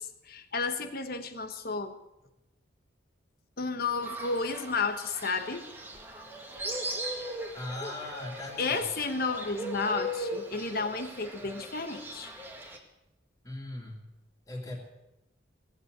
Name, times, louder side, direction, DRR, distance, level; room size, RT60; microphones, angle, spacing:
voice 1, 0.0-2.0 3.6-5.6 8.6-12.3, left 4 dB, 55° left, 8 dB, 1.3 m, -32 dB
Fowl, 4.0-12.8, equal, 10° right, 1.9 m, -39 dB
voice 2, 7.5-8.8 13.4-14.1 14.5-14.8, left 2 dB, 20° left, -4 dB, 2.6 m, -39 dB
18.0 x 7.8 x 8.0 m, 0.94 s
head